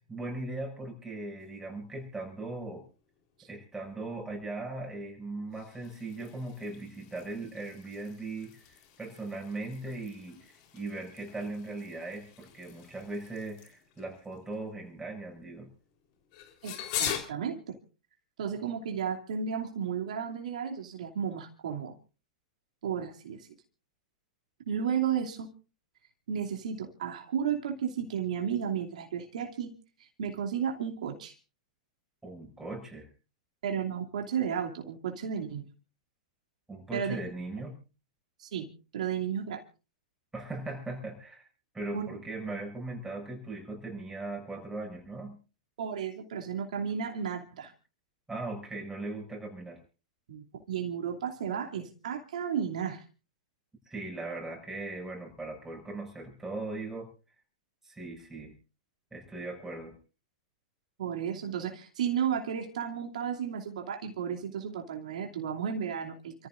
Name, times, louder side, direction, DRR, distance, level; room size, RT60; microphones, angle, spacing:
voice 1, 0.1-2.8 3.5-15.7 32.2-33.1 36.7-37.8 40.3-41.5 41.7-45.4 48.3-49.8 53.8-57.1 57.8-58.5 59.1-59.9, right 2 dB, 10° right, 1 dB, 6.8 m, -39 dB
sound 1, 1.4-17.2, left 10 dB, 55° left, 3.9 m, -44 dB
voice 2, 16.6-17.7 18.4-21.9 22.8-23.5 24.7-25.5 26.3-29.7 30.2-31.3 33.6-35.6 36.9-37.2 38.4-38.7 38.9-39.6 41.9-42.1 45.8-47.7 50.3-53.0 61.0-66.5, right 8 dB, 75° right, 1 dB, 2.7 m, -33 dB
29.0 x 14.5 x 2.6 m, 0.33 s
hypercardioid pair, 110°, 4 cm